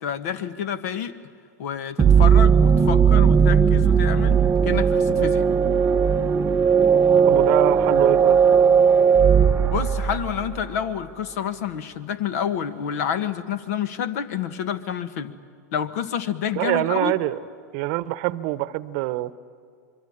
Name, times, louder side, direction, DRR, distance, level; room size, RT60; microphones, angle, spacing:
voice 1, 0.0-1.1 1.6-4.4 4.6-5.5 9.7-15.3 15.7-17.1, left 8 dB, 60° left, 13 dB, 1.4 m, -28 dB
sound 1, 2.0-10.6, right 7 dB, 20° right, 0.8 m, -17 dB
voice 2, 7.3-8.4 16.5-17.4 17.7-19.3, right 17 dB, 50° right, 16 dB, 0.9 m, -24 dB
25.5 x 22.5 x 8.8 m, 2.1 s
hypercardioid pair, 115°, 9 cm